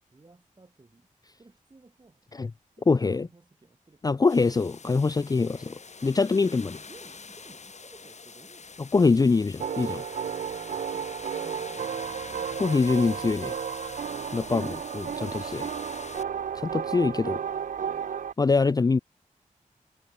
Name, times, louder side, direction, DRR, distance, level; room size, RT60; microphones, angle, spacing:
voice 1, 0.1-1.1 1.4-2.5 2.8-4.2 6.0-9.0 10.7-11.1 11.4-12.3, right 3 dB, 30° right, 7.1 m, -54 dB
voice 2, 2.9-3.3 4.0-5.7 6.0-6.6 8.9-10.0 12.6-13.5 14.3-15.7 16.6-17.4 18.4-19.0, left 4 dB, 30° left, 0.4 m, -24 dB
sound 1, 4.3-16.2, left 4 dB, 55° left, 6.7 m, -45 dB
sound 2, 9.6-18.3, right 8 dB, 75° right, 0.5 m, -33 dB
wide cardioid pair, 95°, 14 cm